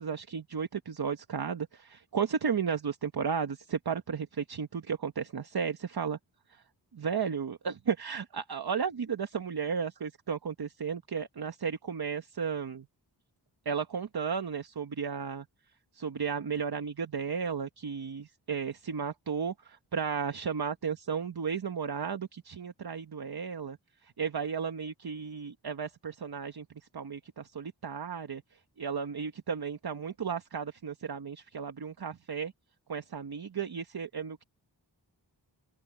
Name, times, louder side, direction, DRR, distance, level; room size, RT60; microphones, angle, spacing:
voice 1, 0.0-6.2 6.5-6.6 6.9-12.9 13.6-15.4 15.9-23.8 24.0-26.7 26.9-28.4 28.8-32.5 32.9-34.4, right 6 dB, 60° right, 1.2 m, -34 dB
open air
cardioid pair, 60°, 43 cm